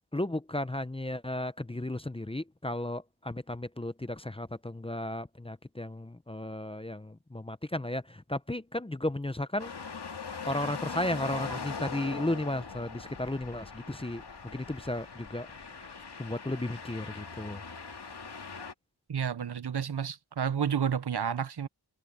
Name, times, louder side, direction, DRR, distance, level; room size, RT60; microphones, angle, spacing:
voice 1, 0.1-9.7 10.5-15.9 16.2-17.6, left 1 dB, 15° left, 0.7 m, -34 dB
Rodovia Transito Pesado, 9.6-18.7, left 5 dB, 75° left, 2.2 m, -41 dB
voice 2, 19.1-21.7, right 8 dB, 70° right, 0.9 m, -30 dB
wide cardioid pair, 70°, 41 cm